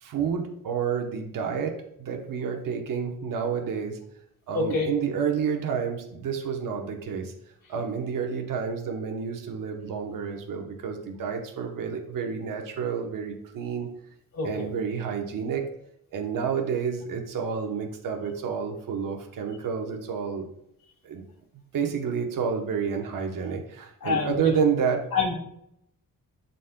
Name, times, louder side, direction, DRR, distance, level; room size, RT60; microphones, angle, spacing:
voice 1, 0.0-4.0 4.5-7.3 7.7-13.9 14.4-15.6 16.1-20.5 21.0-21.2 21.7-25.1, right 6 dB, 70° right, 4 dB, 1.0 m, -29 dB
voice 2, 4.5-4.9 14.4-14.5 24.0-24.5 25.1-25.3, left 4 dB, 75° left, -2 dB, 2.4 m, -25 dB
11.5 x 4.1 x 2.2 m, 0.75 s
cardioid pair, 120°, 34 cm